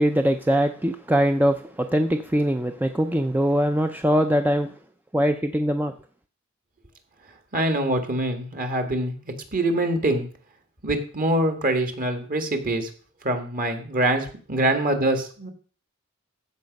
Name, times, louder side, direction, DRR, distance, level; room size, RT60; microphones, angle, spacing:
voice 1, 0.0-4.7 5.1-5.9, equal, 10° right, 7 dB, 0.5 m, -22 dB
voice 2, 7.5-9.1 9.5-10.3 10.8-12.9 13.2-15.5, right 1 dB, 40° right, 6 dB, 1.9 m, -24 dB
14.5 x 5.8 x 5.3 m, 0.42 s
head